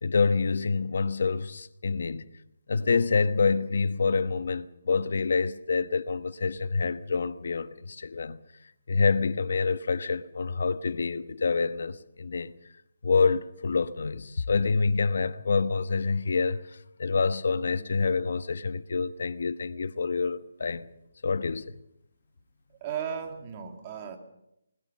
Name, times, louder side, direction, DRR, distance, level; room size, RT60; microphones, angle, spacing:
voice 1, 0.0-2.3 2.7-8.4 8.9-12.5 13.0-20.8 21.2-21.7, left 4 dB, 60° left, 1.2 m, -27 dB
voice 2, 22.8-24.2, right 8 dB, 25° right, 2.3 m, -35 dB
20.5 x 20.5 x 6.8 m
hypercardioid pair, 170°, 0 cm